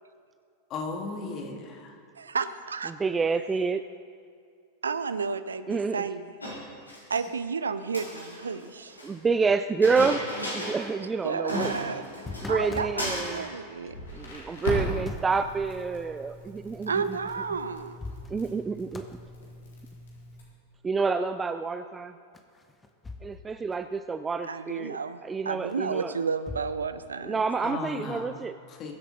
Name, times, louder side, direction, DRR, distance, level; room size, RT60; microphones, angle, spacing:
voice 1, 0.7-2.0 27.6-28.4 28.7-28.9, left 3 dB, 35° left, 2 dB, 2.2 m, -36 dB
voice 2, 2.2-2.9 4.8-6.3 7.1-9.0 11.2-13.9 16.9-18.0 24.5-25.2 25.4-27.4, right 5 dB, 70° right, 12 dB, 0.5 m, -32 dB
voice 3, 2.9-3.8 5.7-6.1 9.0-10.2 10.5-11.7 12.4-13.5 14.1-17.2 18.3-19.0 20.8-22.2 23.2-26.2 27.2-28.6, right 4 dB, 15° right, 11 dB, 0.3 m, -28 dB
Chink clink, 6.4-7.2 7.8-9.1 9.8-10.9 11.2-11.3 11.5-12.7 13.0-13.5, equal, 80° left, 3.3 m, -35 dB
sound 1, 11.7-13.1 14.7-15.5 17.3-17.4 17.8-18.6 18.9-19.2 22.3-23.5 23.7-23.8 25.7-26.7, left 3 dB, 15° left, 1.1 m, -42 dB
Crackle, 13.9-20.4, equal, 60° left, 3.7 m, -38 dB
21.5 x 8.1 x 4.2 m, 2.3 s
figure-of-eight pair, 90°, 0 cm